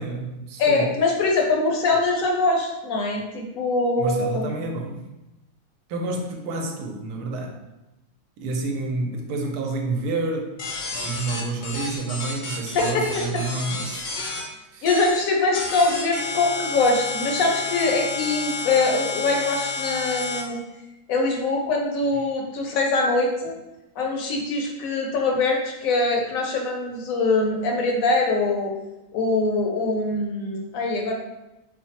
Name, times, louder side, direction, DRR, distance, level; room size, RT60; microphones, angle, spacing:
voice 1, 0.0-0.9 4.0-5.0 5.9-7.6 8.4-10.6 10.9-14.1 14.7-14.9, right 3 dB, 85° right, 1 dB, 1.1 m, -29 dB
voice 2, 0.6-4.5 12.7-13.2 14.8-20.6 21.1-23.5 24.0-28.7 29.1-31.1, left 3 dB, 70° left, 1 dB, 0.9 m, -23 dB
sound 1, 10.6-14.4 14.8-15.2 15.5-20.4, left 4 dB, 90° left, 0.4 m, -30 dB
4.1 x 2.1 x 2.8 m, 0.98 s
omnidirectional pair, 1.6 m